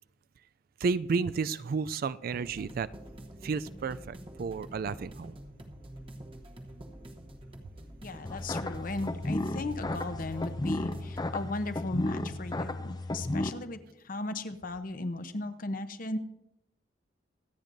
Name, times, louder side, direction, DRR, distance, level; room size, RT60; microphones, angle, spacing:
voice 1, 0.8-2.9 3.4-5.4, right 5 dB, 50° right, 17 dB, 0.3 m, -32 dB
sound 1, 2.3-11.2, right 1 dB, 30° right, 0.9 m, -47 dB
voice 2, 8.0-16.2, left 2 dB, 45° left, 10 dB, 0.8 m, -36 dB
sound 2, 8.2-13.5, left 1 dB, 20° left, 0.5 m, -33 dB
25.0 x 8.8 x 2.6 m, 0.86 s
head